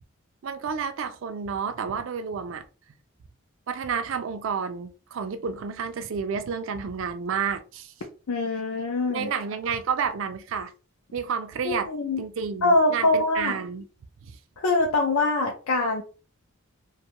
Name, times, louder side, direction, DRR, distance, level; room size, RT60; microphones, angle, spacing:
voice 1, 0.4-2.7 3.7-7.9 9.1-10.7 11.1-11.9 12.2-13.8 14.2-14.4, right 6 dB, 60° right, 0.3 m, -30 dB
voice 2, 8.3-9.3 11.6-12.2 12.6-13.6 14.6-16.0, left 2 dB, 80° left, 0.5 m, -23 dB
2.6 x 2.2 x 2.9 m
head